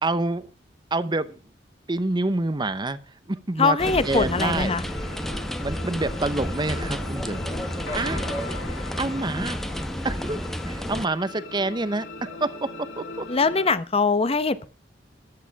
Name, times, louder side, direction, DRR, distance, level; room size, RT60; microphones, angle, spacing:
voice 1, 0.0-0.5 0.9-1.4 1.9-3.0 3.3-3.8 4.0-4.8 5.0-5.2 5.6-7.4 7.9-8.2 9.0-9.6 10.0-13.2, right 2 dB, 25° right, 0.8 m, -27 dB
voice 2, 3.6-4.8 13.3-14.6, left 4 dB, 35° left, 0.9 m, -22 dB
sound 1, 3.8-11.1, equal, ahead, 0.9 m, -31 dB
sound 2, 4.5-13.7, left 3 dB, 75° left, 2.4 m, -39 dB
14.5 x 11.0 x 4.7 m
head